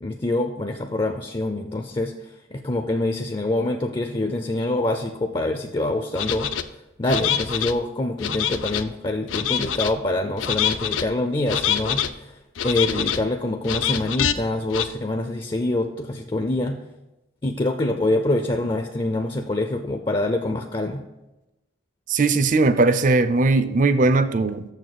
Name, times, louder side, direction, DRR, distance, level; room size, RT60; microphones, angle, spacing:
voice 1, 0.0-6.5 7.0-16.8 17.4-21.0, left 2 dB, 25° left, 5 dB, 0.4 m, -25 dB
sound 1, 6.2-6.6 7.1-7.7 8.2-8.8 9.3-9.9 10.4-11.0 11.5-12.1 12.6-13.2 13.6-14.3 14.7-14.9, left 9 dB, 80° left, 0.5 m, -25 dB
voice 2, 22.1-24.7, right 3 dB, 40° right, 12 dB, 0.5 m, -19 dB
6.8 x 6.4 x 6.7 m, 1.0 s
head